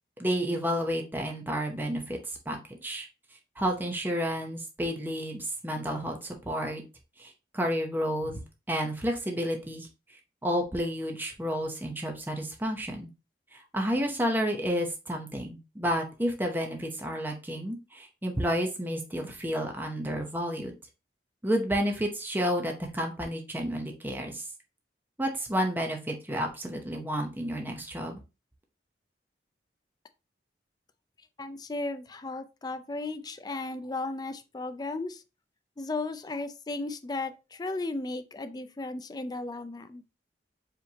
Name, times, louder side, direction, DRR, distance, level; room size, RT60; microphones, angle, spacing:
voice 1, 0.2-2.2 2.5-3.1 3.6-6.8 7.2-8.4 8.7-9.9 10.4-13.1 13.5-20.7 21.4-24.4 25.2-28.2, equal, 10° right, 0.8 m, -31 dB
voice 2, 31.4-35.2 35.8-40.0, left 2 dB, 25° left, 0.4 m, -35 dB
5.0 x 3.2 x 2.8 m
head